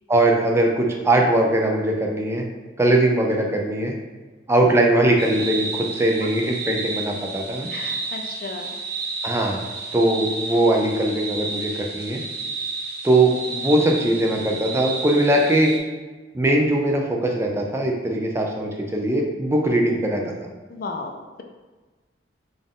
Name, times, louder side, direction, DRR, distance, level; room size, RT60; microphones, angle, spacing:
voice 1, 0.1-2.4 2.8-3.9 4.5-7.7 9.2-9.6 9.9-12.2 13.0-15.8 16.3-20.5, right 1 dB, 15° right, 1 dB, 0.4 m, -20 dB
sound 1, 5.2-15.8, right 3 dB, 60° right, 0.6 m, -31 dB
voice 2, 6.2-6.6 7.7-8.8 20.7-21.4, left 3 dB, 50° left, 4 dB, 0.4 m, -35 dB
3.9 x 2.5 x 3.5 m, 1.3 s
head